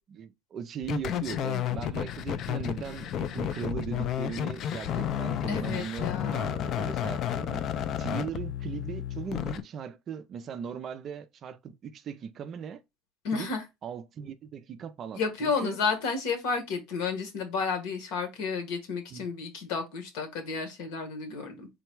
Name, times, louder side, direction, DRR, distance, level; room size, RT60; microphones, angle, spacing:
voice 1, 0.1-7.6 8.0-12.8 13.3-13.5 13.8-15.8 19.1-19.3, right 7 dB, 35° right, 0.4 m, -39 dB
sound 1, 0.8-9.6, left 10 dB, 45° left, 0.3 m, -32 dB
voice 2, 5.5-6.7 13.2-13.6 15.1-21.7, left 5 dB, 85° left, 1.2 m, -32 dB
3.8 x 2.2 x 4.5 m
cardioid pair, 160°, 0 cm